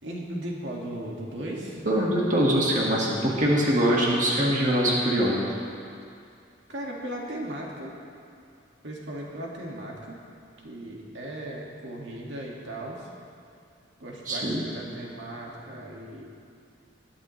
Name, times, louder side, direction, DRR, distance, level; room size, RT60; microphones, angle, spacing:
voice 1, 0.0-1.8 6.7-7.9 8.8-10.2 10.6-13.1 14.0-16.2, right 1 dB, 75° right, -3 dB, 2.0 m, -37 dB
voice 2, 1.8-5.4 14.2-14.6, right 1 dB, 40° right, -4 dB, 1.8 m, -23 dB
20.5 x 11.0 x 3.2 m, 2.4 s
head